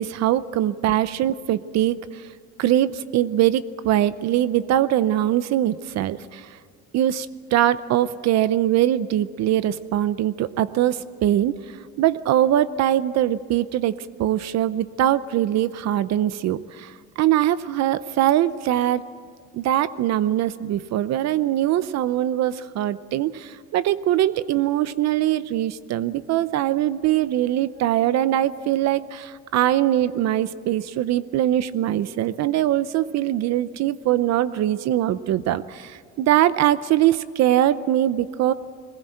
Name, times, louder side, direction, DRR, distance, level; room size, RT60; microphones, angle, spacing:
voice 1, 0.0-2.0 2.6-6.5 6.9-11.5 12.0-19.0 19.5-38.5, right 12 dB, 60° right, 16 dB, 0.7 m, -22 dB
22.0 x 20.5 x 7.8 m, 2.2 s
cardioid pair, 160°, 30 cm